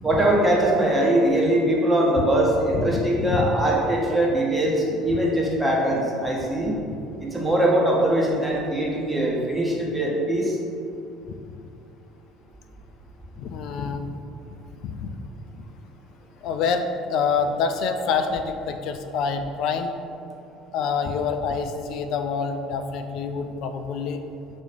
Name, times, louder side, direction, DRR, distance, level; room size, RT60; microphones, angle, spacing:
voice 1, 0.0-6.8 7.2-10.6, right 1 dB, 10° right, -4 dB, 1.5 m, -22 dB
voice 2, 2.7-3.5 13.4-14.1 14.8-15.1 16.4-19.9 20.7-24.2, left 5 dB, 55° left, 7 dB, 0.4 m, -26 dB
6.2 x 3.2 x 5.3 m, 2.6 s
figure-of-eight pair, 60°, 0 cm